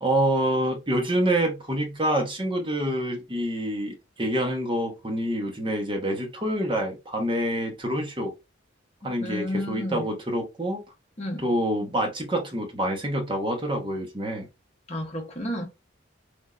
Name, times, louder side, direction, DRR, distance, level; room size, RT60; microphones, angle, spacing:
voice 1, 0.0-8.3 9.0-10.8 11.4-14.5, right 1 dB, 25° right, 0.9 m, -27 dB
voice 2, 9.0-10.1 11.2-11.5 14.9-15.7, equal, 35° left, 0.9 m, -32 dB
3.5 x 2.6 x 2.3 m
head